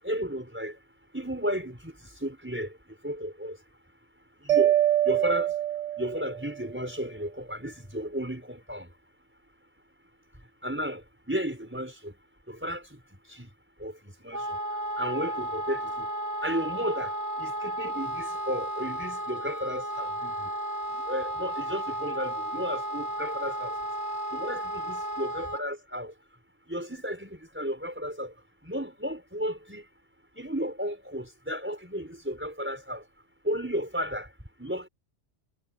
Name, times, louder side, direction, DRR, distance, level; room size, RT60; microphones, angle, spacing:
voice 1, 0.0-0.8 1.1-2.7 3.0-3.6 4.4-4.7 5.0-5.5 6.0-8.9 10.6-12.1 12.5-13.0 13.3-13.5 13.8-14.5 15.0-16.1 16.4-20.5 20.9-23.7 24.3-26.1 26.7-28.3 28.6-29.8 30.4-33.0 33.4-34.3 34.6-34.9, equal, 10° right, 5.1 m, -33 dB
Mallet percussion, 4.5-6.6, right 13 dB, 85° right, 1.4 m, -24 dB
Wind instrument woodwind instrument, 14.3-25.6, equal, 65° right, 7.1 m, -33 dB
omnidirectional pair, 1.2 m